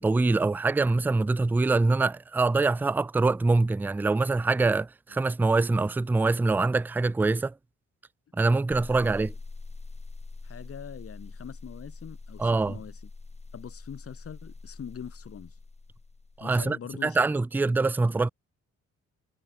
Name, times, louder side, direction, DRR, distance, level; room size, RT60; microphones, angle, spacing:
voice 1, 0.0-7.5 8.3-9.3 12.4-12.8 16.4-18.3, right 3 dB, 5° right, 0.3 m, -24 dB
sound 1, 8.7-16.5, left 3 dB, 20° left, 3.0 m, -44 dB
voice 2, 10.4-13.0 13.5-15.5 16.4-17.2 17.6-17.7, left 8 dB, 50° left, 2.5 m, -43 dB
cardioid pair, 90°, 30 cm